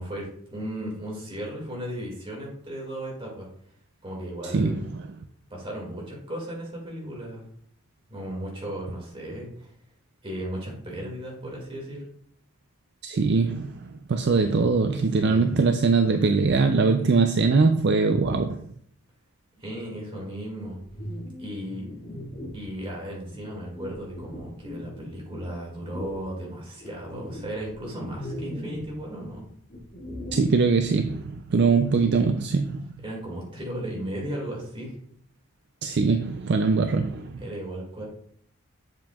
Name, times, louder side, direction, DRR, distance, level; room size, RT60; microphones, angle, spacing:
voice 1, 0.0-3.5 4.0-4.8 5.5-7.4 8.1-9.7 10.2-12.0 14.2-14.7 15.2-15.6 19.6-20.8 21.4-21.8 22.5-29.4 33.0-35.0 37.4-38.0, right 1 dB, 25° right, -2 dB, 2.1 m, -35 dB
voice 2, 4.5-4.8 13.0-13.8 14.1-18.6 30.3-32.9 35.8-37.4, right 4 dB, 50° right, 6 dB, 0.4 m, -22 dB
sound 1, 20.8-22.7 23.3-25.4 25.9-26.2 26.8-29.0 29.2-32.1, left 1 dB, 40° left, 2.3 m, -39 dB
7.5 x 7.3 x 2.3 m, 0.65 s
head